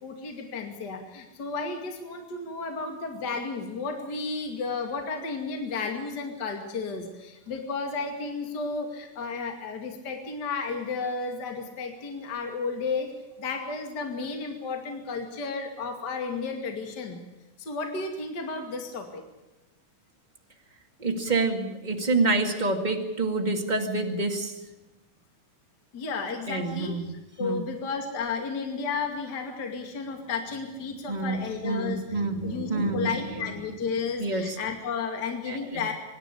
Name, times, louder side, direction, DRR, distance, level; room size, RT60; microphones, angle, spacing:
voice 1, 0.0-13.1 13.4-17.2 17.6-19.2 25.9-35.9, left 4 dB, 35° left, 4 dB, 2.7 m, -33 dB
voice 2, 21.0-24.6 26.5-27.1 27.4-27.6 31.1-33.2 34.2-34.6 35.5-35.8, right 3 dB, 15° right, 3 dB, 1.7 m, -27 dB
25.0 x 12.0 x 9.9 m, 1.0 s
omnidirectional pair, 3.6 m